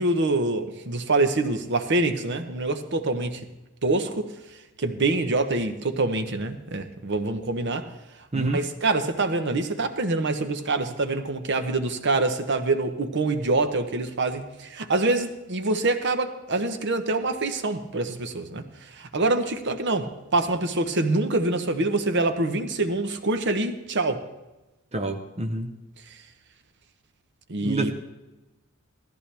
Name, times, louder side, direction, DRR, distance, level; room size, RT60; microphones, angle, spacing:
voice 1, 0.0-3.4 3.8-4.3 4.8-7.9 8.3-18.7 18.9-24.2 27.5-27.9, right 2 dB, 55° right, 9 dB, 0.9 m, -25 dB
voice 2, 24.9-25.7 27.6-27.9, right 2 dB, 30° right, 5 dB, 0.8 m, -27 dB
17.0 x 14.0 x 3.4 m, 1.1 s
head